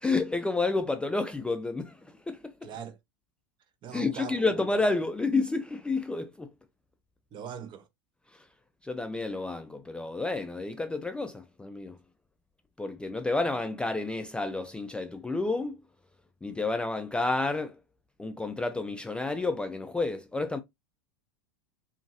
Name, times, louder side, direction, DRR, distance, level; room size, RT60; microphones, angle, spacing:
voice 1, 0.0-2.7 3.9-6.5 8.8-12.0 12.8-15.8 16.4-17.8 18.2-20.6, left 3 dB, 10° left, 0.3 m, -30 dB
voice 2, 2.6-3.0 3.8-4.5 7.3-7.9, right 7 dB, 40° right, 0.6 m, -41 dB
2.7 x 2.6 x 2.5 m
hypercardioid pair, 95°, 12 cm